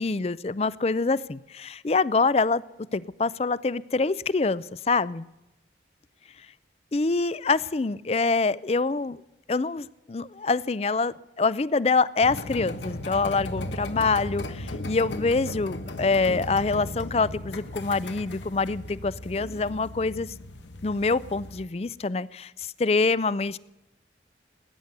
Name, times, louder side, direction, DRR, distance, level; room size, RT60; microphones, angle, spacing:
voice 1, 0.0-2.6 2.9-5.2 6.9-9.2 9.5-20.3 20.8-23.6, left 4 dB, 35° left, 19 dB, 0.4 m, -25 dB
sound 1, 12.2-21.7, left 1 dB, 90° left, 1.4 m, -36 dB
20.0 x 9.7 x 6.8 m, 0.96 s
head